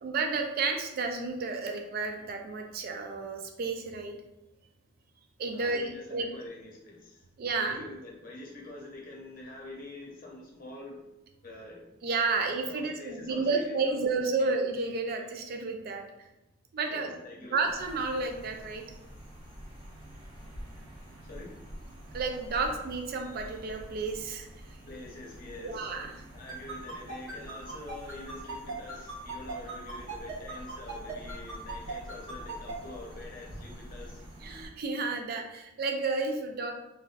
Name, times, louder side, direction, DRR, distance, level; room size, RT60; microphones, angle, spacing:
voice 1, 0.0-4.2 5.4-6.3 7.4-7.8 12.0-16.0 16.7-17.1 17.5-18.8 22.1-24.5 25.6-26.1 34.4-36.7, right 4 dB, 45° right, 4 dB, 0.3 m, -31 dB
voice 2, 5.5-7.3 7.6-11.0 11.4-11.8 12.6-14.5 16.9-17.6 21.2-21.5 24.9-26.0 26.3-34.2, left 2 dB, 45° left, -2 dB, 0.8 m, -46 dB
sound 1, 17.6-34.7, equal, 25° right, 0.7 m, -47 dB
sound 2, 26.5-32.7, right 4 dB, 70° right, 0.8 m, -39 dB
3.2 x 2.5 x 2.4 m, 0.98 s
head